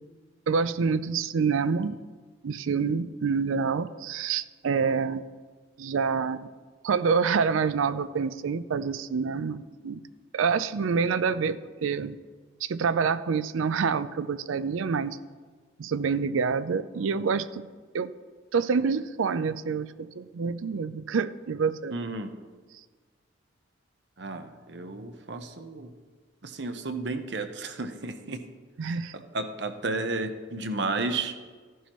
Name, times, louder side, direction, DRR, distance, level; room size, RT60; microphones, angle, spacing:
voice 1, 0.5-2.0 2.4-5.2 5.8-6.5 6.8-10.0 10.3-12.2 12.6-15.2 15.8-17.7 17.9-18.1 18.5-21.9 28.8-29.1, right 5 dB, 80° right, 14 dB, 0.4 m, -27 dB
voice 2, 21.9-22.3 24.2-25.9 26.4-28.4 28.8-31.4, right 3 dB, 60° right, 8 dB, 0.8 m, -33 dB
14.5 x 11.0 x 3.1 m, 1.5 s
head